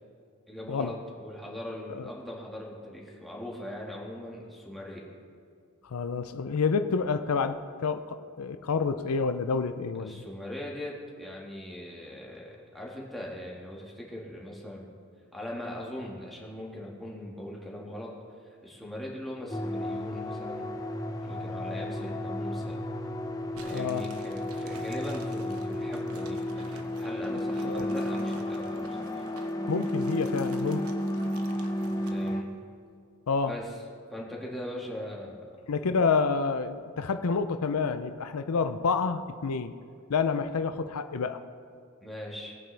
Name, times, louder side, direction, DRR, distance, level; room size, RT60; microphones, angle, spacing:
voice 1, 0.5-5.0 10.0-14.9 15.3-18.1 18.4-20.7 21.2-22.8 23.6-29.2 32.1-32.5 33.5-33.7 34.1-35.6 42.0-42.6, left 1 dB, ahead, -4 dB, 1.8 m, -40 dB
voice 2, 5.8-10.2 23.7-24.1 27.6-27.9 29.7-30.9 33.3-33.5 35.7-39.8 40.1-41.4, left 5 dB, 90° left, 10 dB, 0.5 m, -28 dB
sound 1, 19.5-32.4, left 1 dB, 15° left, 0.7 m, -32 dB
sound 2, 23.6-32.3, right 3 dB, 80° right, 1.0 m, -50 dB
19.5 x 9.1 x 3.4 m, 2.3 s
head